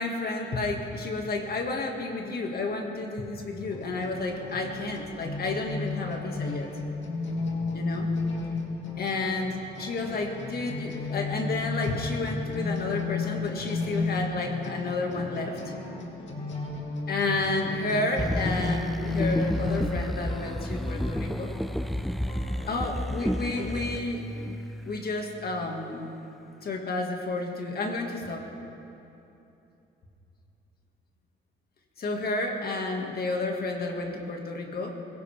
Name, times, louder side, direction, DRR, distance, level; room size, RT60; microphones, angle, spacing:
voice 1, 0.0-6.7 7.7-8.1 9.0-15.8 17.1-21.5 22.7-24.2 24.9-26.1 26.6-28.4 32.0-34.9, left 2 dB, 50° left, 2 dB, 2.1 m, -31 dB
sound 1, 3.7-19.8, left 3 dB, 70° left, 2.6 m, -33 dB
sound 2, 15.1-24.5, left 2 dB, 30° left, 1.4 m, -47 dB
sound 3, 18.2-25.1 25.7-25.8, equal, ahead, 0.4 m, -32 dB
21.5 x 17.5 x 3.6 m, 2.9 s
cardioid pair, 90°, 20 cm